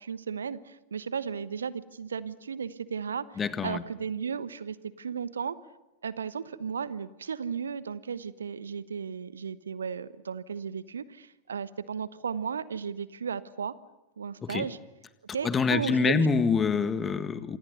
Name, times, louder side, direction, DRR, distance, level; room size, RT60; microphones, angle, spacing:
voice 1, 0.0-5.6 6.0-13.7 14.2-14.8 15.3-16.3, right 6 dB, 70° right, 1.0 m, -35 dB
voice 2, 3.4-3.8 14.4-14.7 15.4-17.6, left 5 dB, 20° left, 1.8 m, -26 dB
28.0 x 27.0 x 6.8 m
figure-of-eight pair, 90°, 0 cm